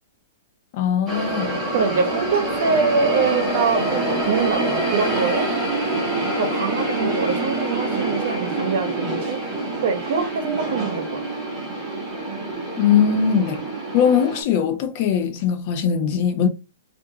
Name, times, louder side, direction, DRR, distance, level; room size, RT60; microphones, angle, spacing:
voice 1, 0.7-1.6 12.8-13.6 13.9-16.5, left 8 dB, 40° left, 0.6 m, -20 dB
sound 1, 1.1-14.4, right 2 dB, 10° right, 1.2 m, -25 dB
voice 2, 1.7-5.5 6.3-9.5 9.8-11.5, right 5 dB, 55° right, 0.9 m, -24 dB
3.4 x 2.6 x 2.8 m
hypercardioid pair, 160°, 0 cm